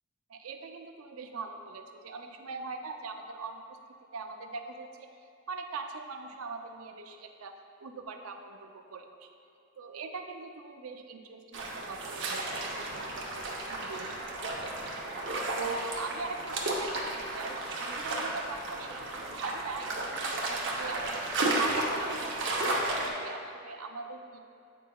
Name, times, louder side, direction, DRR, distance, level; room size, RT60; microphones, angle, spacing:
voice 1, 0.3-3.8 4.1-5.1 5.5-7.5 7.8-9.3 9.8-14.3 14.6-14.7 15.6-21.3 21.6-24.4, right 4 dB, 90° right, 5 dB, 0.5 m, -41 dB
sound 1, 11.5-23.1, right 2 dB, 60° right, 0.8 m, -33 dB
8.2 x 5.4 x 2.3 m, 2.7 s
head